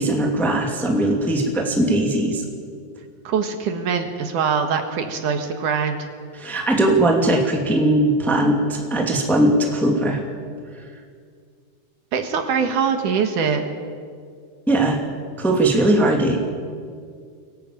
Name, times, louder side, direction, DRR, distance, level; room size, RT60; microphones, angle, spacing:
voice 1, 0.0-2.4 6.4-10.2 14.7-15.0 15.4-16.4, right 1 dB, ahead, 1 dB, 1.8 m, -19 dB
voice 2, 3.2-6.1 12.1-13.6, right 6 dB, 65° right, 6 dB, 2.8 m, -23 dB
23.5 x 17.5 x 8.8 m, 2.1 s
omnidirectional pair, 4.1 m